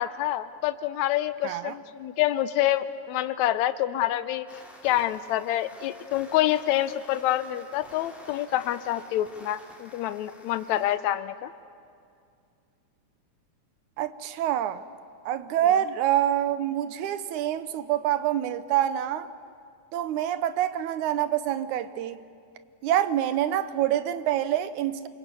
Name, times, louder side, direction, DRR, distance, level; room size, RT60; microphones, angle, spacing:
voice 1, 0.0-4.5 4.8-11.5, left 13 dB, 75° left, 2.0 m, -27 dB
voice 2, 1.4-1.7 14.0-14.8 15.3-19.3 19.9-22.2 22.8-25.1, right 11 dB, 75° right, 2.3 m, -26 dB
sound 1, 4.5-10.9, equal, ahead, 3.9 m, -50 dB
28.0 x 24.5 x 8.4 m
omnidirectional pair, 3.5 m